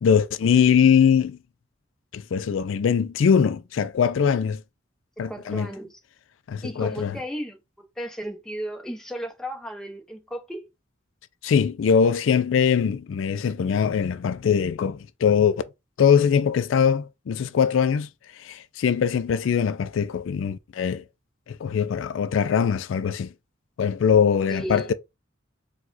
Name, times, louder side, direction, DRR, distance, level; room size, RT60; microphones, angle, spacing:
voice 1, 0.0-1.4 2.1-4.6 5.2-5.7 6.5-7.2 11.4-15.6 16.0-18.1 18.4-21.0 21.5-23.3 23.8-24.9, left 7 dB, 75° left, 0.4 m, -22 dB
voice 2, 5.2-6.0 6.6-7.6 8.0-10.6 24.5-24.9, equal, 5° left, 0.9 m, -34 dB
4.8 x 2.3 x 3.9 m
head